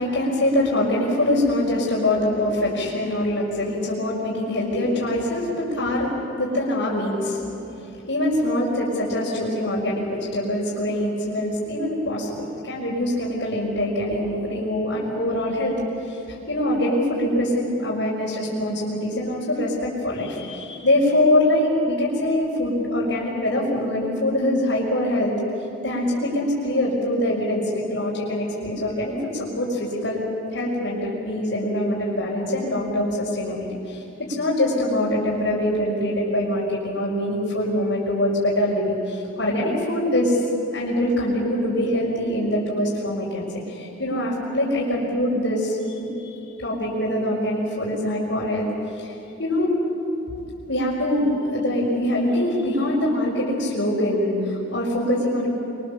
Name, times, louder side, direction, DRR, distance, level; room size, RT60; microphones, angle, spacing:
voice 1, 0.0-7.4 7.8-15.8 16.1-16.2 16.5-25.3 25.8-30.2 30.5-34.0 34.4-40.4 40.7-48.7 48.9-49.7 50.7-55.5, left 1 dB, 75° left, -7 dB, 5.0 m, -24 dB
26.0 x 23.5 x 7.1 m, 3.0 s
head